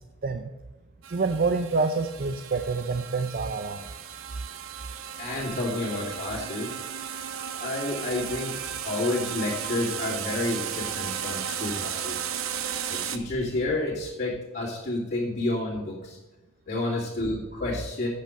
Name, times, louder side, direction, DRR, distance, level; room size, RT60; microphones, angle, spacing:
sound 1, 1.0-13.2, right 8 dB, 85° right, 0.7 m, -35 dB
voice 1, 1.1-3.9, right 4 dB, 45° right, 8 dB, 0.5 m, -27 dB
voice 2, 5.2-6.7 7.5-12.2 12.9-16.2 16.7-18.1, left 2 dB, 50° left, -10 dB, 2.5 m, -30 dB
8.4 x 6.7 x 6.4 m, 1.1 s
head